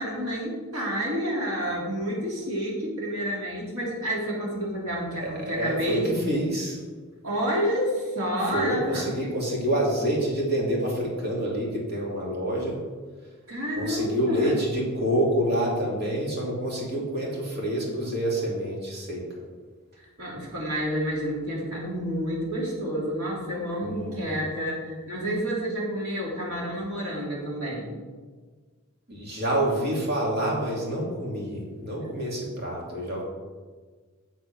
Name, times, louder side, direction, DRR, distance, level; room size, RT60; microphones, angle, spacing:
voice 1, 0.0-6.3 7.2-9.1 13.5-14.6 20.0-27.9, equal, 75° right, -3 dB, 3.1 m, -29 dB
voice 2, 5.2-6.8 8.5-12.8 13.8-19.2 23.8-24.2 29.1-33.2, right 1 dB, 45° right, -3 dB, 2.6 m, -27 dB
7.4 x 7.1 x 5.9 m, 1.4 s
head